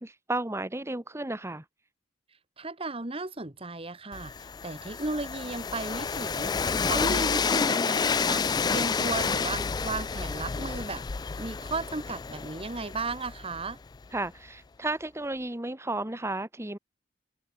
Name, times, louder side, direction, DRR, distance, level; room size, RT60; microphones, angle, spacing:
voice 1, 0.0-1.6 14.1-16.8, right 2 dB, 15° right, 1.4 m, -33 dB
voice 2, 2.6-4.3 4.6-8.4 8.7-11.0 11.4-13.8, right 3 dB, 30° right, 2.1 m, -35 dB
Train, 4.1-14.0, left 5 dB, 25° left, 0.3 m, -29 dB
head